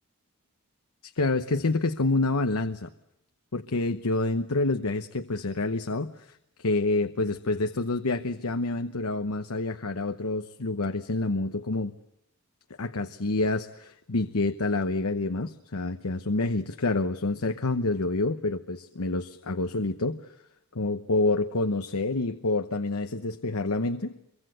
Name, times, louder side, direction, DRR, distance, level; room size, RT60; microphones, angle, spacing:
voice 1, 1.0-2.9 3.5-11.9 12.8-20.2 20.7-24.1, left 2 dB, 80° left, 8 dB, 1.0 m, -28 dB
25.5 x 23.5 x 7.9 m, 0.82 s
head